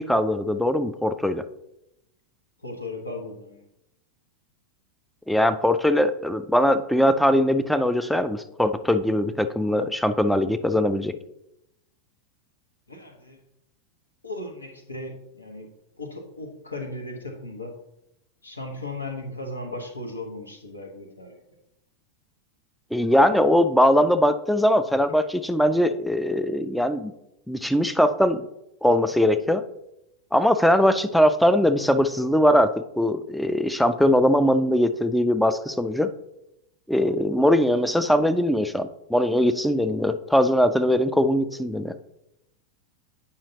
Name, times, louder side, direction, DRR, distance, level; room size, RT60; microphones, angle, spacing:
voice 1, 0.0-1.4 5.3-11.1 22.9-27.1 27.5-28.4 28.8-29.6 30.3-36.1 36.9-41.9, equal, ahead, 10 dB, 0.3 m, -21 dB
voice 2, 2.6-3.6 12.9-13.4 14.2-17.7 18.4-21.4, left 2 dB, 80° left, 3 dB, 1.2 m, -36 dB
8.6 x 5.5 x 2.8 m, 0.85 s
figure-of-eight pair, 90°, 0 cm